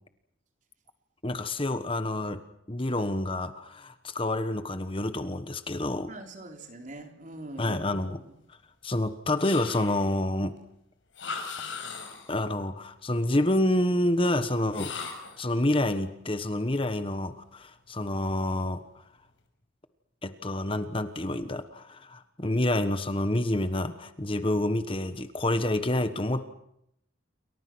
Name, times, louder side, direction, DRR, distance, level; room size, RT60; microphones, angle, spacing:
voice 1, 1.2-2.4 2.7-6.1 7.6-8.2 8.8-10.6 12.3-14.9 15.4-18.8 20.2-26.5, left 1 dB, 25° left, 10 dB, 1.3 m, -28 dB
voice 2, 6.1-7.8 8.1-8.2, right 2 dB, 40° right, 4 dB, 3.8 m, -43 dB
sound 1, 9.4-10.2 11.1-12.4 14.7-15.4, left 5 dB, 75° left, 6.3 m, -38 dB
29.0 x 24.5 x 6.2 m, 0.77 s
head